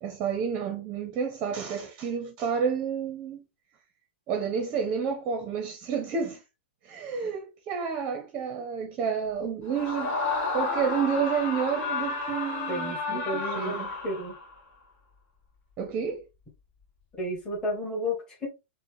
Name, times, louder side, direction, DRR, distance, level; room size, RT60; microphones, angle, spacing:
voice 1, 0.0-3.4 4.3-6.4 6.8-10.1 10.5-13.9 15.8-16.2, right 6 dB, 30° right, 0.7 m, -30 dB
Screaming, 9.7-14.5, left 4 dB, 35° left, 2.2 m, -31 dB
voice 2, 12.7-14.4 17.2-18.5, left 1 dB, 15° left, 1.5 m, -32 dB
4.2 x 2.1 x 3.2 m
hypercardioid pair, 145°, 6 cm